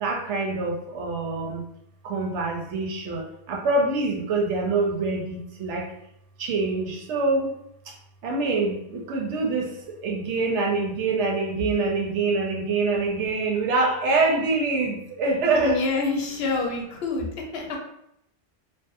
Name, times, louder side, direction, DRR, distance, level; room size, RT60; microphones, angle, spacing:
voice 1, 0.0-1.6 2.0-3.2 3.5-5.8 6.4-7.5 8.2-9.7 10.0-15.8, right 3 dB, 85° right, 0 dB, 0.9 m, -25 dB
voice 2, 15.5-17.8, left 3 dB, 70° left, 0 dB, 0.8 m, -27 dB
2.6 x 2.0 x 2.5 m, 0.78 s
omnidirectional pair, 1.2 m